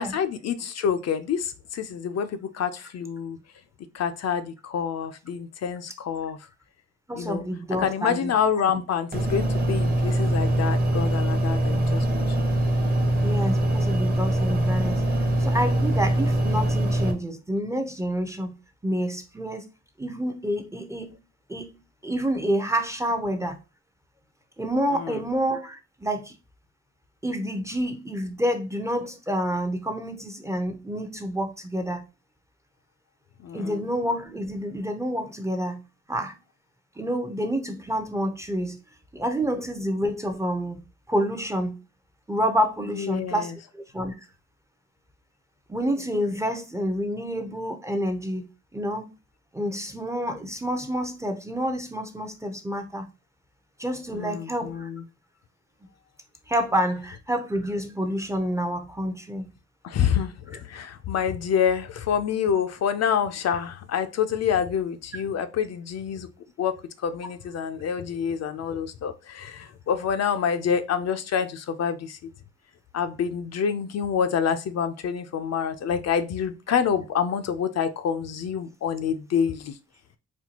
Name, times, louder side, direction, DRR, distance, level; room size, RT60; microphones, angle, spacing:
voice 1, 0.0-3.4 3.9-6.4 7.1-7.4 7.8-12.5 24.9-25.2 33.4-33.8 43.0-43.5 54.1-55.0 59.8-66.3 66.6-72.3 72.9-79.7, left 7 dB, 60° left, 0.5 m, -27 dB
voice 2, 7.1-8.3 8.6-8.8 13.2-15.0 15.4-18.6 18.8-19.7 20.0-21.2 21.5-23.6 24.6-26.4 27.2-32.0 33.5-35.8 36.1-36.4 37.0-38.8 39.1-41.8 42.3-44.2 45.7-48.5 48.7-49.1 49.5-53.1 53.8-54.9 56.5-59.5, equal, 10° right, 0.5 m, -28 dB
sound 1, 9.1-17.1, right 1 dB, 30° right, 0.9 m, -23 dB
4.2 x 2.2 x 2.8 m
cardioid pair, 90°, 30 cm